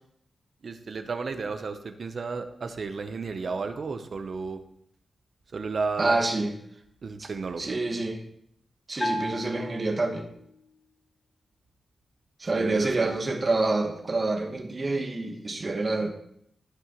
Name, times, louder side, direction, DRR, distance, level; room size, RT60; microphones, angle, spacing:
voice 1, 0.6-4.6 5.5-6.2 7.0-7.7 12.5-13.2, right 4 dB, 50° right, 8 dB, 0.8 m, -33 dB
voice 2, 6.0-6.5 7.2-7.3 7.6-8.2 8.9-10.3 12.4-16.1, right 2 dB, 35° right, 4 dB, 1.2 m, -27 dB
Bell, 9.0-10.6, equal, 15° left, 0.9 m, -34 dB
15.0 x 6.0 x 3.0 m, 0.70 s
wide cardioid pair, 155°, 0 cm